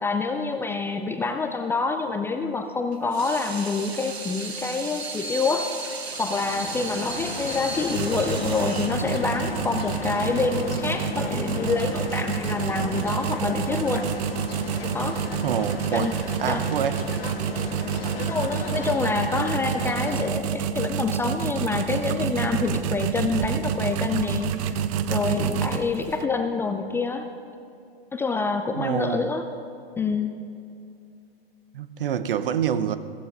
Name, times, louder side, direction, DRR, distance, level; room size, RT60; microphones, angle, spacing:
voice 1, 0.0-5.7 6.2-14.1 14.9-15.2 15.9-16.1 16.5-16.7 18.0-24.8 25.1-27.3 28.1-29.5 30.0-30.4, left 4 dB, 10° left, 0.4 m, -27 dB
Water tap faucet / Sink (filling or washing), 2.9-11.0, right 3 dB, 80° right, 1.2 m, -35 dB
sound 1, 6.1-20.3, left 4 dB, 70° left, 1.6 m, -35 dB
sound 2, 7.9-26.3, right 8 dB, 35° right, 0.7 m, -28 dB
voice 2, 15.4-16.1 16.4-17.0 28.8-29.3 31.7-33.0, right 8 dB, 60° right, 0.9 m, -26 dB
16.0 x 14.5 x 5.3 m
figure-of-eight pair, 105°, 31 cm